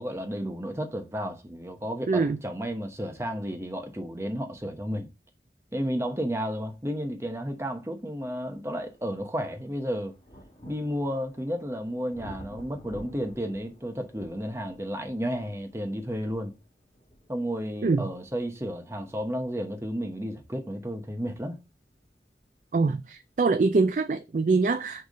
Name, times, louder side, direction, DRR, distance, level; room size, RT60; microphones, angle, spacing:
voice 1, 0.0-5.1 5.7-10.1 10.7-16.5 17.3-21.6, equal, 15° right, 1.0 m, -32 dB
voice 2, 2.1-2.4 17.8-18.1 22.7-25.1, right 4 dB, 45° right, 0.4 m, -24 dB
sound 1, 8.0-22.7 23.6-23.7, equal, 35° left, 2.2 m, -52 dB
6.5 x 3.5 x 5.4 m
head